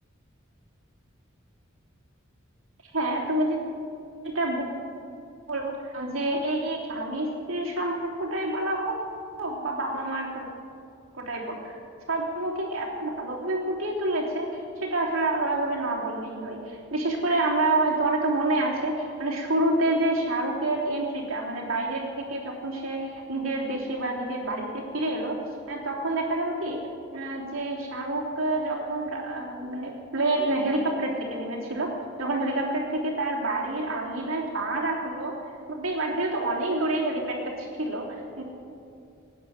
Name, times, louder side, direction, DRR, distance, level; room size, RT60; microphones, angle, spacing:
voice 1, 2.9-3.6 4.2-4.7 5.5-8.9 9.4-10.5 11.1-11.8 12.1-25.4 25.7-26.8 27.1-31.9 32.2-35.4 35.7-38.4, right 2 dB, 85° right, -2 dB, 3.3 m, -28 dB
18.5 x 9.6 x 7.4 m, 2.6 s
head